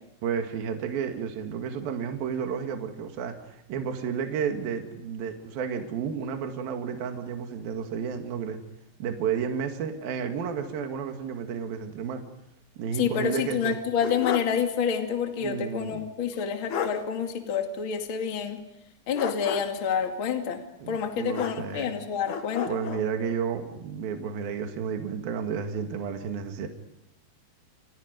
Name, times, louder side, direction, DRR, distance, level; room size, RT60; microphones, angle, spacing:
voice 1, 0.2-8.6 9.0-12.2 12.8-13.8 15.4-16.0 20.8-21.9 22.7-26.7, right 7 dB, 60° right, 4 dB, 3.6 m, -32 dB
voice 2, 12.9-18.6 19.1-20.6 20.9-22.7, left 7 dB, 35° left, 4 dB, 2.6 m, -28 dB
sound 1, 13.6-14.6 14.9-15.0 16.3-16.4 16.7-17.0 19.1-19.9 21.3-21.9 22.3-23.1, left 6 dB, 55° left, 2.5 m, -33 dB
30.0 x 28.5 x 5.3 m, 0.80 s
omnidirectional pair, 5.0 m